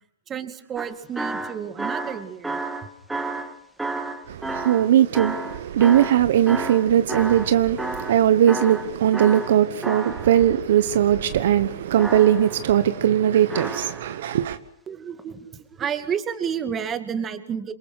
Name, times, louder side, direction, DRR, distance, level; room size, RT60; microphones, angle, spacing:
voice 1, 0.3-2.6 14.9-17.7, right 7 dB, 20° right, 2.3 m, -30 dB
sound 1, 0.8-7.5 7.8-8.2 8.5-10.6 12.0-12.7 13.5-14.2 15.2-15.3, right 2 dB, 5° right, 1.9 m, -31 dB
voice 2, 4.3-14.6, right 10 dB, 65° right, 1.1 m, -19 dB
27.5 x 23.0 x 6.3 m
hypercardioid pair, 135°, 0 cm